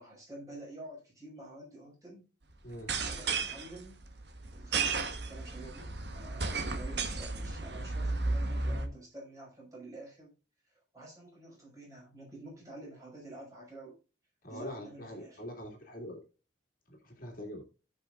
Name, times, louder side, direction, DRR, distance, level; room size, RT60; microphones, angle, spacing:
voice 1, 0.0-2.2 3.1-4.0 4.5-10.3 10.9-14.0 14.5-15.4, right 1 dB, 20° right, -4 dB, 5.8 m, -49 dB
sound 1, 2.7-8.9, right 3 dB, 65° right, 1.2 m, -34 dB
voice 2, 14.4-16.2 16.9-17.6, left 1 dB, 50° left, 1 dB, 2.3 m, -43 dB
16.5 x 5.6 x 2.5 m, 0.33 s
head